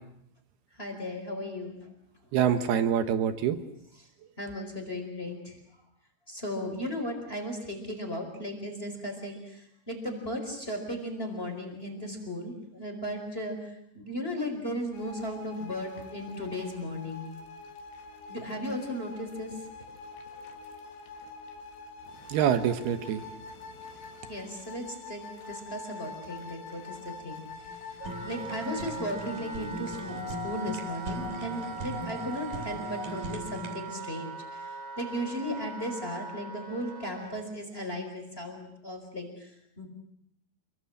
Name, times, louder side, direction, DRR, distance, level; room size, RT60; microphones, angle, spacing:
voice 1, 0.8-1.8 4.4-5.6 6.3-13.6 13.9-17.3 18.3-19.5 24.3-25.2 25.5-27.4 28.2-39.5 39.8-39.9, equal, 10° left, 4 dB, 4.2 m, -36 dB
voice 2, 2.3-3.6 22.3-23.2, right 9 dB, 70° right, 9 dB, 2.6 m, -25 dB
sound 1, 14.9-33.3, left 5 dB, 60° left, 3.9 m, -44 dB
Fire, 27.5-33.8, right 2 dB, 50° right, 4.2 m, -40 dB
Wind instrument woodwind instrument, 28.0-37.3, right 5 dB, 90° right, 7.4 m, -41 dB
28.0 x 23.0 x 7.8 m, 0.74 s
omnidirectional pair, 5.9 m